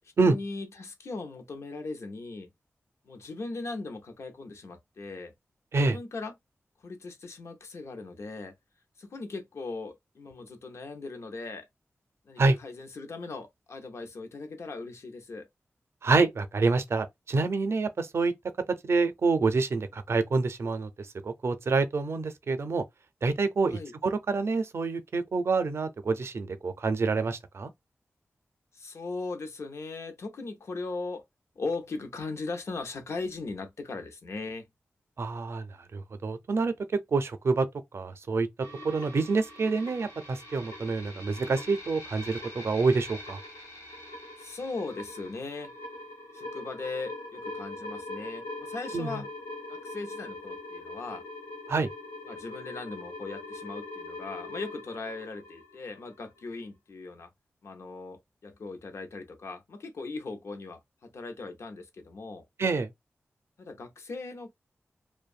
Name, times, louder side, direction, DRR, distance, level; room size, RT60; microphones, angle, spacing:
voice 1, 0.2-2.5 3.0-5.3 5.8-6.3 6.8-8.5 9.0-11.7 12.3-15.5 23.7-23.9 28.7-31.2 31.6-34.7 44.4-45.7 46.3-49.3 49.7-51.2 52.2-57.3 57.6-62.4 63.6-64.5, left 3 dB, 70° left, 0.6 m, -39 dB
voice 2, 16.0-18.3 18.8-22.8 23.2-27.7 35.2-36.7 37.1-37.7 37.9-38.5 38.8-43.4 48.9-49.2 51.7-51.9 62.6-62.9, right 3 dB, 65° right, 0.5 m, -27 dB
sound 1, 38.6-56.5, left 2 dB, 85° left, 1.0 m, -42 dB
2.6 x 2.2 x 2.3 m
wide cardioid pair, 105°, 5 cm